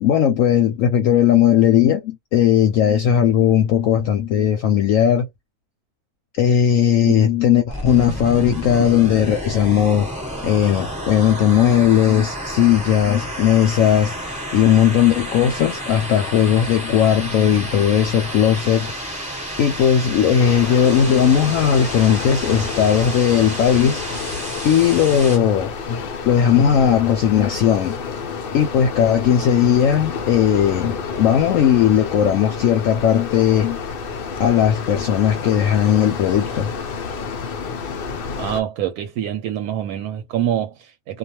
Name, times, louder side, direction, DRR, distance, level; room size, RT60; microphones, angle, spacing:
voice 1, 0.0-5.3 6.4-10.1 10.4-14.1 14.5-24.3 24.6-26.0 26.3-28.0 28.5-33.8 34.4-36.7, left 9 dB, 70° left, 0.8 m, -17 dB
sound 1, 7.7-25.4, equal, 5° right, 1.0 m, -30 dB
sound 2, 20.4-38.6, left 5 dB, 90° left, 0.4 m, -29 dB
voice 2, 38.4-41.2, right 10 dB, 80° right, 1.1 m, -25 dB
2.4 x 2.3 x 2.8 m
omnidirectional pair, 1.7 m